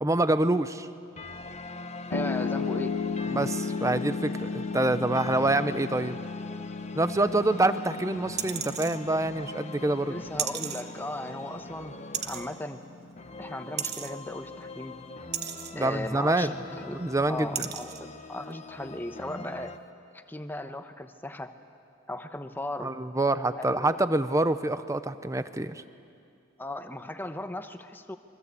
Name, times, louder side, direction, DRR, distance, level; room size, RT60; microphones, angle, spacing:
voice 1, 0.0-0.9 3.3-6.2 7.0-10.2 15.7-16.5 16.9-17.7 22.8-25.8, right 2 dB, 15° right, 12 dB, 0.7 m, -26 dB
sound 1, 1.2-19.8, left 3 dB, 35° left, 1.2 m, -43 dB
Piano, 2.1-14.3, left 4 dB, 85° left, 1.1 m, -35 dB
voice 2, 2.1-3.0 10.1-12.0 12.2-12.8 13.4-15.0 15.7-17.0 17.3-19.8 20.1-21.5 22.1-22.9 23.6-24.0 26.6-28.2, left 1 dB, 10° left, 7 dB, 1.0 m, -37 dB
sound 2, 8.4-9.0 10.4-10.8 12.1-12.5 13.8-14.1 15.3-15.7 16.8-16.9 17.6-18.0 18.5-18.6, right 10 dB, 55° right, 1.2 m, -33 dB
27.0 x 23.5 x 8.4 m, 2.6 s
head